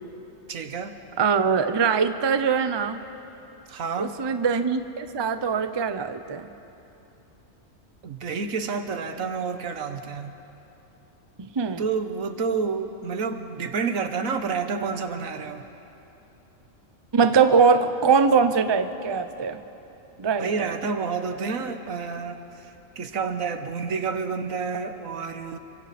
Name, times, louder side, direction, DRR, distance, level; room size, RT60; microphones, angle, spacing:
voice 1, 0.5-0.9 3.7-4.1 8.0-10.3 11.8-15.6 20.4-22.7 23.0-25.6, right 5 dB, 80° right, 8 dB, 1.5 m, -29 dB
voice 2, 1.2-3.0 4.0-6.5 11.4-11.8 17.1-19.6 20.2-20.7, right 5 dB, 25° right, 9 dB, 0.6 m, -22 dB
29.5 x 24.5 x 4.3 m, 3.0 s
omnidirectional pair, 1.4 m